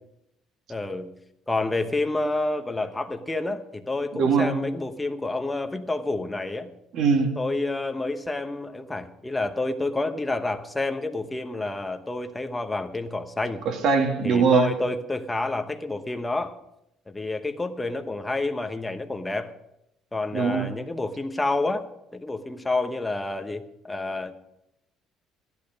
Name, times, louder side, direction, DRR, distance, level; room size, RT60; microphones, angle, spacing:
voice 1, 0.7-1.1 1.5-6.7 7.4-13.6 14.2-16.6 17.1-19.5 20.1-21.9 22.1-24.3, left 2 dB, 10° left, 7 dB, 0.9 m, -29 dB
voice 2, 4.1-4.6 6.9-7.3 13.7-14.7 20.3-20.7, right 5 dB, 55° right, 5 dB, 1.9 m, -21 dB
14.5 x 10.5 x 5.2 m, 0.84 s
cardioid pair, 155°, 0 cm